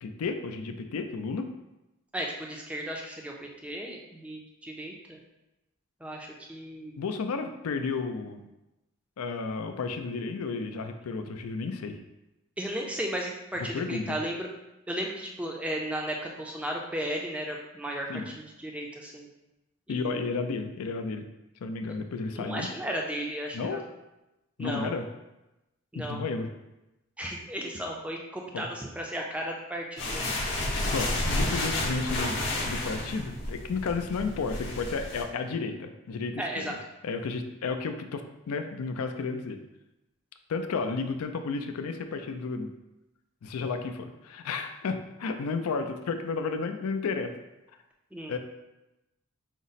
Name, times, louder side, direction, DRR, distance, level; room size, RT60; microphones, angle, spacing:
voice 1, 0.0-1.5 7.0-8.5 9.2-12.0 13.7-14.2 18.1-18.3 19.9-21.3 21.6-22.7 23.5-23.9 24.6-25.1 25.9-26.5 28.5-28.7 30.9-36.8 37.0-39.6 40.5-42.7 43.4-47.3 48.3-48.4, left 4 dB, 90° left, 7 dB, 0.4 m, -32 dB
voice 2, 2.1-5.2 6.0-7.0 12.6-14.5 14.9-18.1 18.3-19.3 19.9-20.4 22.3-23.8 24.6-24.9 25.9-26.3 27.2-30.3 36.4-36.7 48.1-48.3, right 1 dB, 5° right, 0 dB, 0.4 m, -35 dB
sound 1, 30.0-35.2, left 1 dB, 55° left, 0.7 m, -31 dB
5.1 x 2.0 x 4.0 m, 0.97 s
head